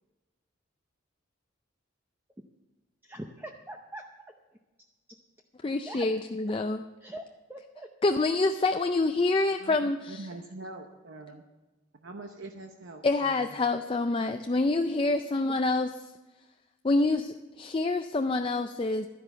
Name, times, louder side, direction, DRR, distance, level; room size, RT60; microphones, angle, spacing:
voice 1, 3.0-4.1 5.8-6.1 6.5-6.6 7.0-7.2 7.5-7.9 15.5-15.6, right 1 dB, 10° right, 3 dB, 0.7 m, -42 dB
voice 2, 5.6-6.8 8.0-10.2 13.0-15.9 16.8-19.1, left 2 dB, 25° left, 7 dB, 0.4 m, -27 dB
voice 3, 9.6-11.4 12.0-13.5, right 2 dB, 70° right, 4 dB, 0.9 m, -44 dB
12.0 x 10.5 x 6.9 m, 1.2 s
head